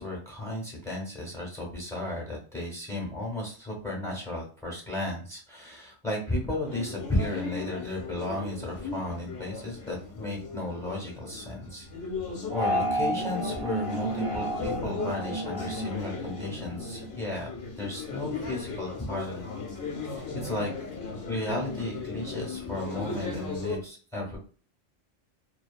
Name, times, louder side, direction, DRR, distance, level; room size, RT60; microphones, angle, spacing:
voice 1, 0.0-11.9 12.5-17.5 17.8-19.5 20.1-20.7 21.3-24.4, left 1 dB, 5° left, -3 dB, 0.7 m, -34 dB
sound 1, 6.6-23.8, left 4 dB, 50° left, 0.8 m, -37 dB
sound 2, 12.5-17.1, right 1 dB, 35° right, 0.6 m, -32 dB
2.7 x 2.3 x 2.3 m, 0.41 s
omnidirectional pair, 1.2 m